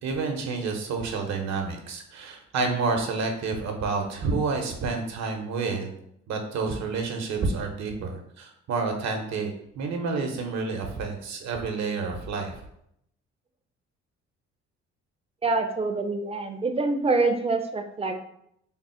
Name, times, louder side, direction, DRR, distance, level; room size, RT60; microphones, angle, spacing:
voice 1, 0.0-5.9 6.3-12.6, right 4 dB, 65° right, 3 dB, 0.9 m, -29 dB
voice 2, 15.4-18.2, right 3 dB, 20° right, 5 dB, 0.6 m, -25 dB
3.7 x 2.0 x 4.3 m, 0.74 s
supercardioid pair, 65°, 29 cm